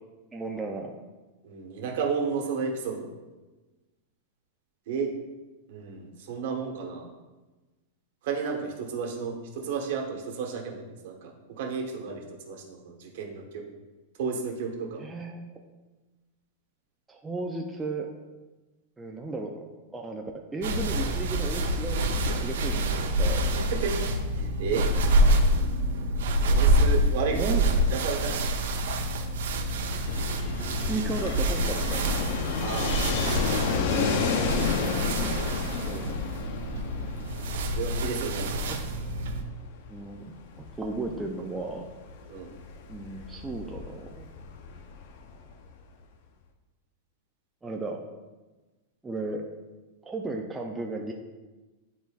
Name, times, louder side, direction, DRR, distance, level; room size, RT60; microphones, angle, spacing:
voice 1, 0.3-0.9 15.0-15.5 17.1-18.1 19.0-19.6 19.9-20.2 20.5-22.9 23.2-23.4 24.8-25.0 27.3-27.6 30.6-32.0 35.8-36.1 38.7-38.8 39.9-41.8 42.9-44.3 47.6-48.0 49.0-49.4 50.0-51.1, right 3 dB, 10° right, 0 dB, 0.3 m, -34 dB
voice 2, 1.4-3.1 4.9-5.1 5.7-7.1 8.2-13.7 14.2-15.0 23.7-24.8 26.5-27.6 27.9-28.6 32.6-33.2 33.8-34.2 37.7-38.7 42.3-42.5, right 5 dB, 55° right, 1 dB, 1.1 m, -32 dB
sound 1, 20.6-39.4, right 1 dB, 80° right, 0.7 m, -27 dB
Fixed-wing aircraft airplane, 30.1-45.8, left 5 dB, 50° left, 0.5 m, -32 dB
10.0 x 4.0 x 2.3 m, 1.2 s
supercardioid pair, 170°, 0 cm